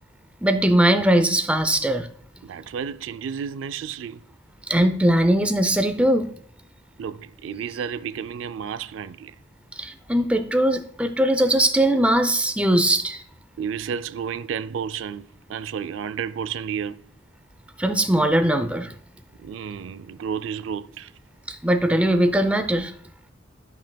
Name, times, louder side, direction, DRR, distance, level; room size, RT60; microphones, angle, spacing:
voice 1, 0.4-2.1 4.7-6.3 9.8-13.2 17.8-18.9 21.5-22.9, right 1 dB, 5° right, 0.5 m, -20 dB
voice 2, 2.4-4.2 7.0-9.4 13.6-17.0 19.4-21.1, right 7 dB, 90° right, 0.4 m, -31 dB
12.0 x 5.5 x 2.2 m
head